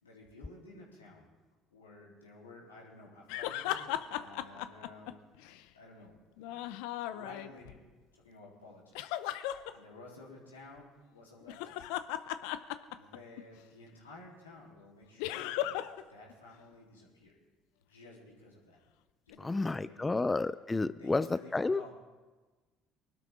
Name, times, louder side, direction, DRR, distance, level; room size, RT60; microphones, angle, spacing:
voice 1, 0.0-1.3 1.7-5.2 5.7-6.7 7.1-7.8 8.1-9.0 9.7-11.9 12.9-15.8 16.1-17.3 17.9-18.8 19.3-20.2 20.9-21.9, left 2 dB, 90° left, -4 dB, 3.5 m, -53 dB
sound 1, 3.3-5.6 6.4-7.8 8.9-9.7 11.4-13.4 15.2-16.0 16.3-16.4 19.3-19.4, left 13 dB, 70° left, 0.6 m, -36 dB
voice 2, 19.4-21.3 21.5-21.8, left 3 dB, 20° left, 16 dB, 0.4 m, -30 dB
23.5 x 12.0 x 3.7 m, 1.3 s
hypercardioid pair, 60°, 0 cm